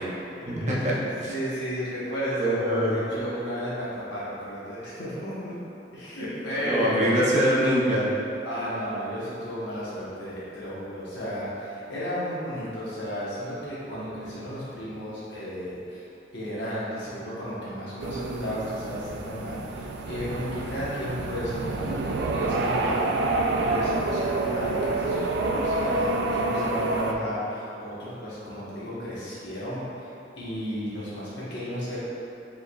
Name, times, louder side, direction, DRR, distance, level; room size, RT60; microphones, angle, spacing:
voice 1, 0.4-0.9 1.2-1.3 2.4-3.3 6.6-8.1, equal, 40° right, -6 dB, 0.7 m, -24 dB
voice 2, 1.2-5.5 5.9-7.2 8.4-16.1 16.3-22.0 22.3-23.3 23.6-30.1 30.3-32.0, equal, 75° left, -10 dB, 1.1 m, -33 dB
sound 1, 18.0-27.1, right 2 dB, 65° right, 0.3 m, -28 dB
5.2 x 3.5 x 2.3 m, 2.9 s
head